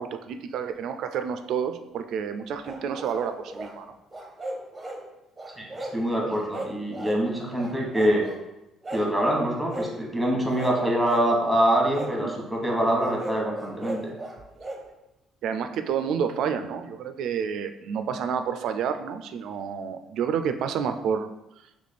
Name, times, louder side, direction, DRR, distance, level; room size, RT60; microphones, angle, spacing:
voice 1, 0.0-4.0 12.2-12.3 15.4-21.3, right 7 dB, 65° right, 8 dB, 0.3 m, -29 dB
sound 1, 2.6-3.7 4.1-5.0 5.4-6.0 6.3-7.2 7.6-8.4 8.8-9.1 9.7-9.9 10.4-11.3 11.9-12.1 13.0-14.8, right 1 dB, 15° right, 0.6 m, -36 dB
voice 2, 5.6-8.2 8.9-14.1, right 1 dB, ahead, -2 dB, 1.0 m, -25 dB
3.3 x 3.0 x 4.2 m, 0.91 s
cardioid pair, 125°, 0 cm